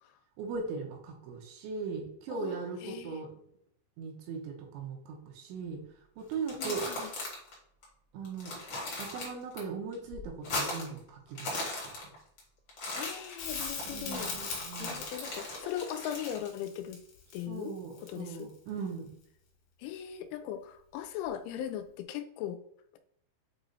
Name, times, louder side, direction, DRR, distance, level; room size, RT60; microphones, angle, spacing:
voice 1, 0.4-3.3 4.0-6.9 8.1-8.5 9.0-12.1 13.8-15.0 17.5-19.1, right 5 dB, 80° right, 1 dB, 3.3 m, -39 dB
voice 2, 2.3-3.2 6.6-7.1 12.9-14.3 14.8-17.0 17.3-17.7 18.1-18.5 19.8-22.6, left 10 dB, 85° left, 9 dB, 3.0 m, -39 dB
sound 1, 6.3-7.5 7.8-7.9 8.2-9.6 9.9-11.0 11.3-12.4 12.7-16.5, left 2 dB, 40° left, 2.0 m, -38 dB
Crackle, 13.4-18.5 21.2-21.3, left 5 dB, 65° left, 2.9 m, -41 dB
7.9 x 3.0 x 3.9 m, 0.68 s
omnidirectional pair, 5.4 m